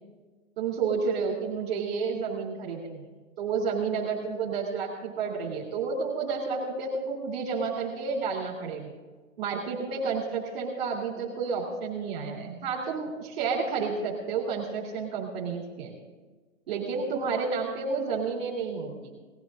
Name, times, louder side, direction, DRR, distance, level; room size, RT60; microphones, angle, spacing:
voice 1, 0.6-3.1 3.4-8.9 9.4-15.9 16.7-18.9, right 5 dB, 40° right, -3 dB, 3.5 m, -30 dB
19.0 x 13.5 x 3.9 m, 1.3 s
hypercardioid pair, 175°, 40 cm